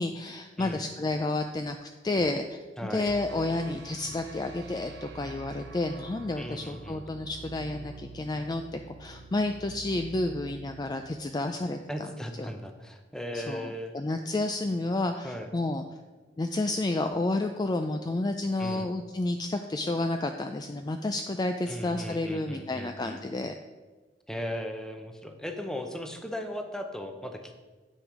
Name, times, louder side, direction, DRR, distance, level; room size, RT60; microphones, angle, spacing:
voice 1, 0.0-2.6 2.9-12.1 12.4-12.5 13.3-15.8 16.4-23.5, left 2 dB, 25° left, 6 dB, 0.4 m, -30 dB
voice 2, 2.8-3.1 6.4-7.0 11.9-14.0 15.2-15.5 18.6-18.9 21.7-23.2 24.3-27.5, equal, 5° left, 5 dB, 0.8 m, -37 dB
sound 1, 3.1-12.2, right 3 dB, 75° right, 0.8 m, -47 dB
8.9 x 6.4 x 4.9 m, 1.3 s
head